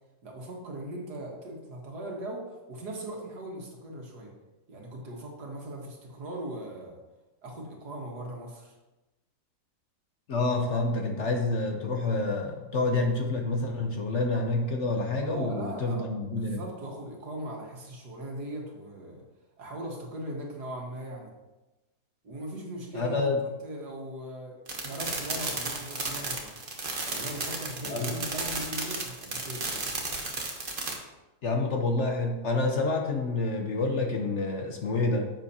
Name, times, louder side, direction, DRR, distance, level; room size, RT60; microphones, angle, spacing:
voice 1, 0.2-4.3 4.7-7.0 7.4-8.7 15.1-19.2 19.6-21.3 22.2-24.5 24.8-26.6 27.1-30.0, right 1 dB, 75° right, 0 dB, 2.1 m, -39 dB
voice 2, 10.3-16.6 22.9-23.4 27.8-28.2 31.4-35.3, left 3 dB, 55° left, 3 dB, 1.0 m, -28 dB
sound 1, 24.7-30.9, right 3 dB, 35° right, 1.2 m, -33 dB
9.8 x 7.3 x 2.8 m, 1.1 s
omnidirectional pair, 1.7 m